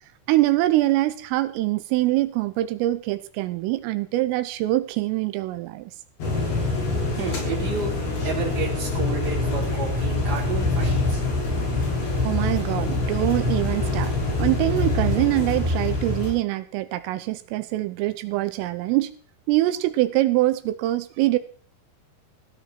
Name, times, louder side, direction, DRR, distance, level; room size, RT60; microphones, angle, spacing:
voice 1, 0.3-5.9 12.2-14.1 14.4-19.1 19.5-21.4, right 17 dB, 85° right, 12 dB, 3.5 m, -24 dB
sound 1, 6.2-16.3, left 2 dB, 50° left, 7.5 m, -25 dB
voice 2, 7.1-7.9 8.2-11.2, right 4 dB, 20° right, -2 dB, 4.7 m, -31 dB
16.5 x 16.0 x 4.5 m, 0.41 s
omnidirectional pair, 5.8 m